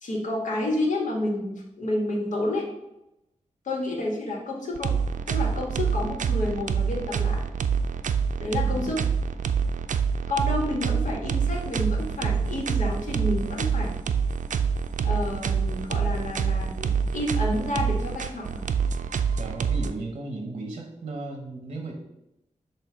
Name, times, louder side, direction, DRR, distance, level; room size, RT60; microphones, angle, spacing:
voice 1, 0.0-2.6 3.6-5.0 5.3-7.4 8.4-9.0 10.3-14.0 15.0-18.7, left 1 dB, 80° left, -2 dB, 1.6 m, -29 dB
sound 1, 4.8-19.9, right 6 dB, 80° right, 0.4 m, -26 dB
voice 2, 8.6-9.1 19.4-21.9, right 2 dB, 45° right, 2 dB, 1.1 m, -35 dB
6.9 x 2.8 x 5.1 m, 0.89 s
wide cardioid pair, 175°, 13 cm